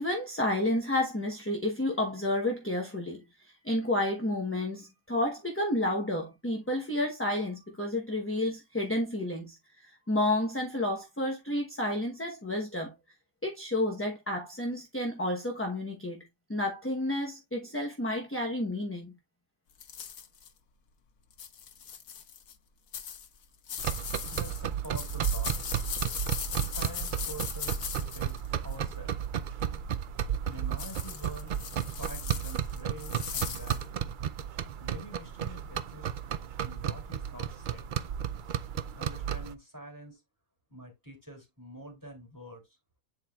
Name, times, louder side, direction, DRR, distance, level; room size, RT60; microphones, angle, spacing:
voice 1, 0.0-12.9 13.4-19.2, left 1 dB, 10° left, 0.8 m, -31 dB
sound 1, 19.8-20.5 21.3-22.5 22.9-28.9 30.8-33.8, left 8 dB, 85° left, 1.4 m, -39 dB
sound 2, 23.8-39.5, right 9 dB, 85° right, 0.4 m, -33 dB
voice 2, 24.3-25.5 26.6-29.2 30.4-31.6 32.0-34.1 34.8-36.1 36.6-37.8 39.0-40.2 40.7-42.8, right 1 dB, 15° right, 2.8 m, -46 dB
9.9 x 4.4 x 2.3 m
omnidirectional pair, 1.5 m